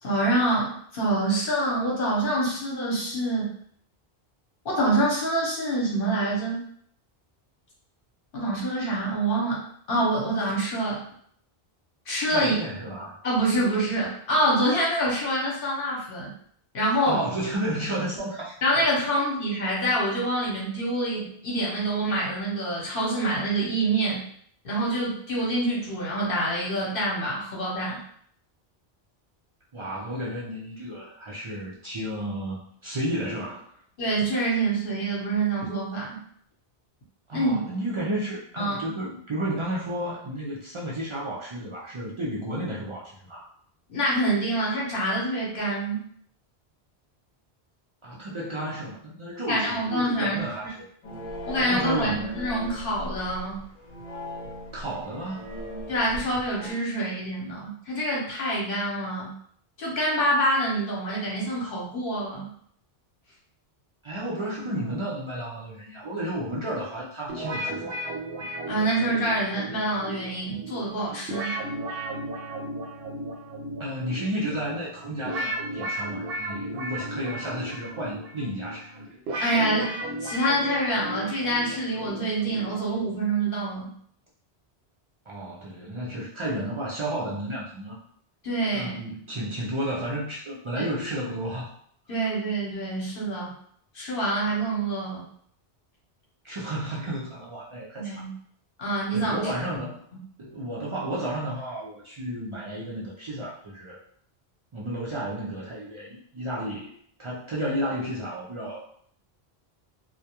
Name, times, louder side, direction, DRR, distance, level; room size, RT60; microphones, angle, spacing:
voice 1, 0.0-3.5 4.6-6.6 8.3-9.6 9.9-11.0 12.1-12.6 13.2-16.3 16.7-17.2 18.6-24.2 24.6-28.0 34.0-36.2 37.3-37.6 38.6-38.9 43.9-46.0 49.5-50.4 51.5-53.6 55.9-59.3 59.8-62.5 68.7-71.6 79.4-83.9 88.4-88.9 90.7-90.8 92.1-93.5 93.9-95.3 98.0-98.3 98.8-99.5, right 1 dB, 60° left, -5 dB, 0.9 m, -26 dB
voice 2, 12.3-13.2 17.1-18.8 19.1-19.2 29.7-33.7 37.3-43.5 48.0-50.9 51.6-52.4 54.7-55.5 64.0-67.9 73.8-78.9 85.3-88.0 88.7-91.7 96.4-98.2 99.1-100.0 100.4-104.0 104.7-106.9 107.2-108.8, right 1 dB, 55° right, -5 dB, 0.3 m, -32 dB
sound 1, 51.0-56.7, equal, 35° left, 0.9 m, -38 dB
sound 2, 67.3-83.2, right 1 dB, 75° right, 0.8 m, -35 dB
2.2 x 2.1 x 2.8 m, 0.62 s
omnidirectional pair, 1.0 m